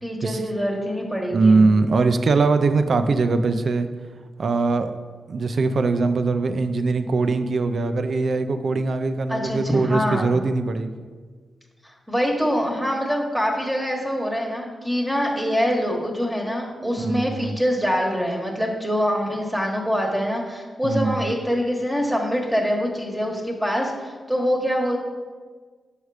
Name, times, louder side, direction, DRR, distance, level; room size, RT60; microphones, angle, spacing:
voice 1, 0.0-1.6 9.3-10.3 12.1-25.0, equal, 5° right, -1 dB, 1.2 m, -24 dB
voice 2, 1.3-3.9 4.4-4.9 5.3-10.9 17.0-17.5 20.8-21.3, right 3 dB, 65° right, 9 dB, 0.4 m, -21 dB
5.3 x 4.9 x 4.8 m, 1.5 s
cardioid pair, 55°, 0 cm